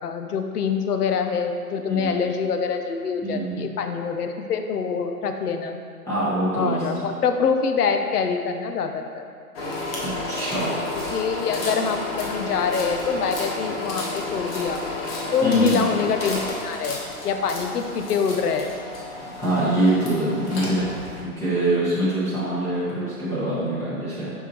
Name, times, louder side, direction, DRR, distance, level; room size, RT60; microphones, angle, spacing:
voice 1, 0.0-5.8 6.6-9.2 11.1-14.8 15.3-18.7, left 5 dB, 75° left, 6 dB, 0.7 m, -25 dB
voice 2, 3.2-3.6 6.1-6.8 10.0-10.7 15.4-15.9 19.4-20.8 21.2-24.3, right 1 dB, 5° left, -10 dB, 1.1 m, -24 dB
sound 1, 9.5-21.2, left 2 dB, 40° left, 1.2 m, -31 dB
6.0 x 5.6 x 3.0 m, 2.4 s
hypercardioid pair, 145°, 46 cm